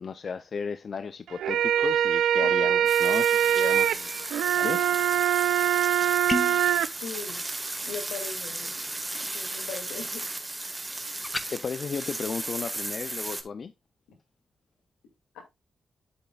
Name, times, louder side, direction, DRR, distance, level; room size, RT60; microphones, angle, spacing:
voice 1, 0.0-4.9 11.5-13.7, left 5 dB, 60° left, 0.5 m, -35 dB
sound 1, 1.3-6.9, right 10 dB, 85° right, 0.4 m, -23 dB
voice 2, 2.4-2.8 6.3-6.4 7.0-7.4 7.8-8.8 9.3-10.2 15.3-15.4, left 5 dB, 90° left, 2.4 m, -39 dB
sound 2, 2.9-13.4, right 2 dB, 25° right, 1.6 m, -35 dB
sound 3, 6.3-6.7 11.2-11.5, left 2 dB, 30° left, 1.1 m, -29 dB
8.9 x 7.6 x 2.4 m
supercardioid pair, 40°, 0 cm